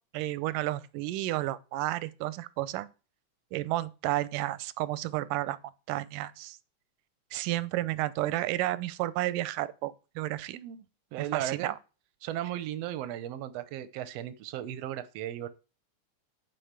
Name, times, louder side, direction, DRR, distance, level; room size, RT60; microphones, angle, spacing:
voice 1, 0.1-2.9 3.5-5.6 5.9-6.6 7.3-10.6 11.2-11.8, right 16 dB, 90° right, 2.3 m, -31 dB
voice 2, 10.5-10.8 11.1-11.7 12.2-15.5, right 12 dB, 70° right, 1.6 m, -36 dB
11.0 x 4.9 x 8.1 m
omnidirectional pair, 3.6 m